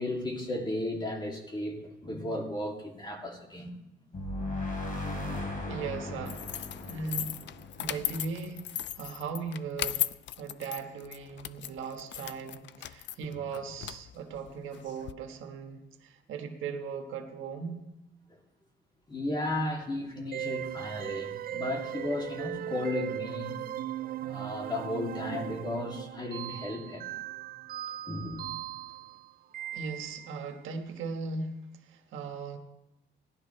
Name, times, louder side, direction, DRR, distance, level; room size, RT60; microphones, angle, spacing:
voice 1, 0.0-3.7 18.3-18.4 19.1-23.6 24.2-27.2 28.1-28.6, left 1 dB, 20° left, 0 dB, 2.7 m, -34 dB
sound 1, 4.1-8.7, left 2 dB, 45° left, 3.2 m, -37 dB
voice 2, 5.7-6.4 6.9-7.4 7.8-10.1 10.4-17.8 27.9-28.0 29.7-32.6, right 5 dB, 80° right, 4 dB, 1.4 m, -38 dB
sound 2, 6.2-15.1, left 12 dB, 65° left, 0.5 m, -37 dB
sound 3, 20.3-30.5, right 12 dB, 50° right, 0.4 m, -38 dB
18.0 x 11.5 x 3.3 m, 0.90 s
cardioid pair, 90°, 20 cm